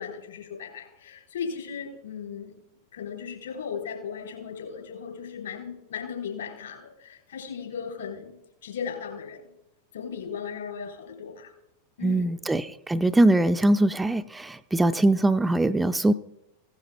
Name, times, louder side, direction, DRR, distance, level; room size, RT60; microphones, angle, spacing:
voice 1, 0.0-2.5 2.9-8.3 8.6-9.5 9.9-11.5 12.0-12.4, left 6 dB, 65° left, 2 dB, 3.9 m, -36 dB
voice 2, 12.0-16.1, right 1 dB, 10° right, 9 dB, 0.3 m, -22 dB
16.5 x 11.5 x 2.3 m, 0.86 s
figure-of-eight pair, 90°, 0 cm